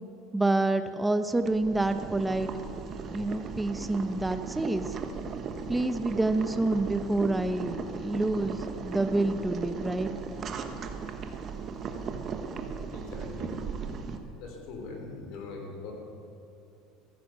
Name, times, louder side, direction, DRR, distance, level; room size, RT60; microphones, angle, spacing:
voice 1, 0.3-2.5 3.1-4.9 5.7-10.1, right 2 dB, 10° right, 10 dB, 0.7 m, -28 dB
Boiling, 1.4-14.2, right 5 dB, 35° right, 1.1 m, -37 dB
voice 2, 12.9-13.5 14.4-15.9, left 4 dB, 65° left, 1 dB, 3.6 m, -41 dB
14.0 x 10.0 x 6.7 m, 2.9 s
supercardioid pair, 120°, 0 cm